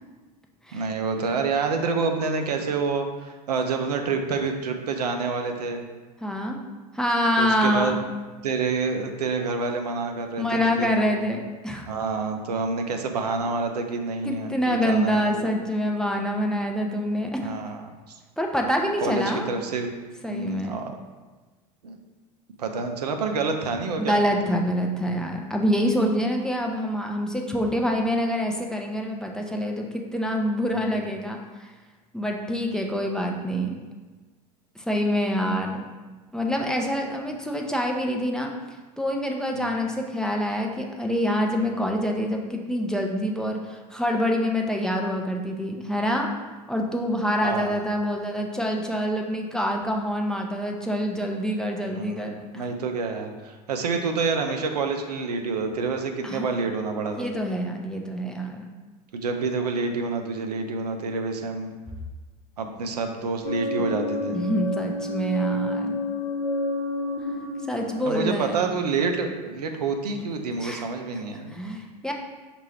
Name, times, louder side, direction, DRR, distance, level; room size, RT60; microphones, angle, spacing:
voice 1, 0.7-5.8 7.4-8.0 8.4-11.1 11.9-15.6 17.4-17.8 18.1-18.2 19.0-19.9 20.3-20.9 21.8-22.0 22.6-24.3 30.8-30.9 39.5-39.7 47.4-47.8 51.9-57.3 59.1-61.7 62.6-64.4 68.0-71.6, right 4 dB, 80° right, 5 dB, 0.5 m, -28 dB
voice 2, 6.2-6.6 6.9-8.0 10.4-11.9 14.2-17.5 18.4-19.5 20.2-20.8 24.0-31.7 32.1-33.8 34.8-35.8 36.3-46.3 46.7-52.4 56.2-56.6 57.1-58.7 64.3-66.0 67.7-68.6 70.6-70.8 71.5-72.1, equal, 5° left, 1 dB, 0.4 m, -26 dB
sound 1, 63.4-69.2, left 2 dB, 65° left, 0.8 m, -30 dB
5.4 x 2.5 x 3.2 m, 1.3 s
figure-of-eight pair, 80°, 20 cm